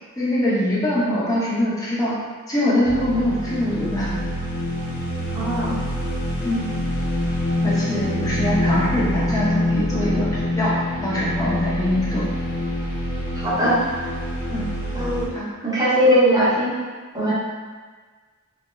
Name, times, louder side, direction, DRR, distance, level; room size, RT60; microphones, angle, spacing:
voice 1, 0.2-2.1 2.5-4.1 6.4-6.6 7.6-10.7 11.0-12.3 14.5-14.7 15.3-15.4, left 1 dB, 15° left, -8 dB, 0.8 m, -23 dB
sound 1, 2.8-15.3, left 1 dB, 85° left, 0.8 m, -25 dB
voice 2, 5.3-5.8 13.4-13.8 14.9-15.3 15.6-16.7 17.1-17.3, equal, 20° right, -9 dB, 0.9 m, -19 dB
3.4 x 2.3 x 3.1 m, 1.5 s
head